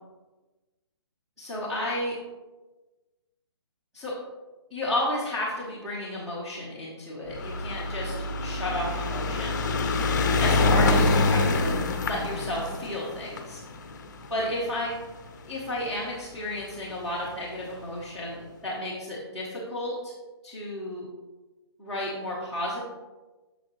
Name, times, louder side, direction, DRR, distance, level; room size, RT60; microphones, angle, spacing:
voice 1, 1.4-2.2 3.9-4.1 4.7-8.1 8.4-9.6 10.4-11.7 12.0-13.6 14.3-14.9 15.5-20.1 20.4-21.1 21.8-22.8, left 1 dB, 5° right, -11 dB, 0.9 m, -32 dB
sound 1, 7.3-15.8 16.6-16.7 16.9-17.0 17.3-17.4, left 3 dB, 45° left, 0.7 m, -26 dB
7.7 x 6.4 x 3.1 m, 1.2 s
hypercardioid pair, 170°, 14 cm